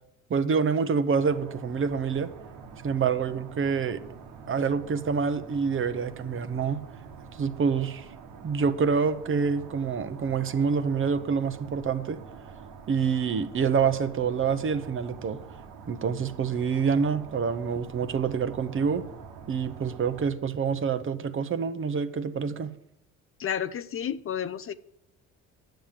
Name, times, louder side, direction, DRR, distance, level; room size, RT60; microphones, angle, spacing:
voice 1, 0.3-2.3 2.8-4.0 4.5-6.8 7.4-8.1 8.4-12.2 12.9-15.4 15.9-19.1 19.5-22.7, right 6 dB, 40° right, 0.9 m, -27 dB
sound 1, 1.2-20.3, right 6 dB, 85° right, 1.5 m, -46 dB
voice 2, 23.4-24.7, left 9 dB, 45° left, 0.6 m, -31 dB
10.5 x 7.2 x 7.5 m
cardioid pair, 90°, 31 cm